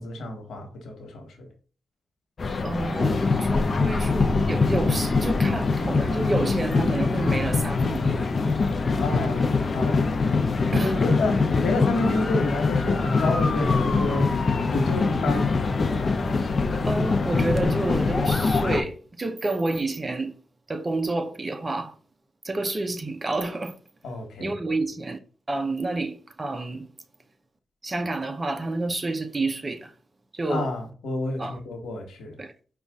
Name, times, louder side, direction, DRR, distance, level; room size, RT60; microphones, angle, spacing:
voice 1, 0.0-1.5 9.0-9.5 9.7-10.4 10.8-11.3 11.6-14.3 14.7-15.5 24.0-24.5 30.5-32.3, left 2 dB, 85° left, 1.2 m, -29 dB
sound 1, 2.4-18.8, left 4 dB, 45° left, 0.6 m, -23 dB
voice 2, 2.6-8.3 10.7-11.0 16.8-20.4 20.7-22.0 22.4-23.8 24.4-25.2 25.5-26.9 27.8-29.9 30.3-30.7 31.4-31.6 32.4-32.5, right 2 dB, 30° right, 0.7 m, -29 dB
5.2 x 2.4 x 3.5 m
cardioid pair, 65°, 0 cm